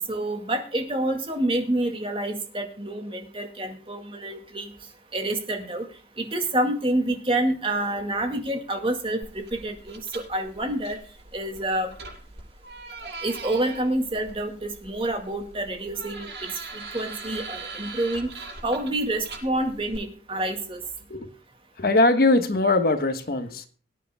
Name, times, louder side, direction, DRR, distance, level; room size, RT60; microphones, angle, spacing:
voice 1, 0.1-4.7 5.1-5.9 6.2-11.0 11.3-11.9 13.0-18.3 18.6-20.8, right 1 dB, 30° right, 4 dB, 2.1 m, -28 dB
sound 1, 9.2-20.0, right 3 dB, 70° right, 7.6 m, -41 dB
voice 2, 21.8-23.7, left 2 dB, 60° left, 8 dB, 1.3 m, -21 dB
23.5 x 9.8 x 2.2 m, 0.41 s
head